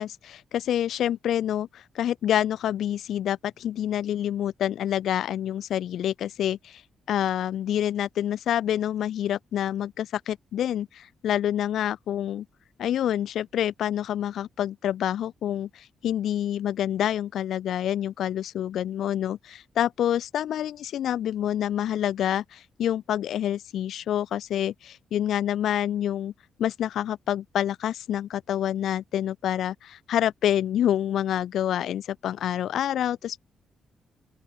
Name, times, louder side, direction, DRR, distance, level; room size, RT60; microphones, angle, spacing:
voice 1, 0.0-6.8 7.1-12.5 12.8-26.3 26.6-33.4, left 11 dB, 70° left, 0.4 m, -27 dB
open air
cardioid pair, 165°, 0 cm